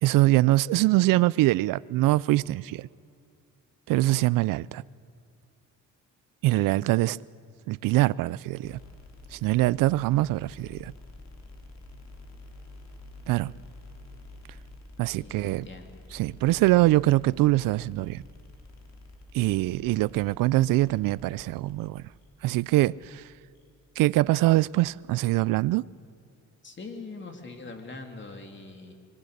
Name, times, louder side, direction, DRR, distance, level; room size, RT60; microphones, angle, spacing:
voice 1, 0.0-2.9 3.9-4.8 6.4-7.2 7.7-8.8 9.3-10.9 13.3-13.5 15.0-15.7 16.1-18.2 19.3-22.0 22.4-23.2 24.0-25.9, right 17 dB, 80° right, 0.5 m, -23 dB
sound 1, 8.6-25.6, left 2 dB, 55° left, 3.4 m, -50 dB
voice 2, 15.1-15.9 26.6-28.9, left 3 dB, 35° left, 2.9 m, -42 dB
25.0 x 21.5 x 6.6 m
cardioid pair, 100°, 33 cm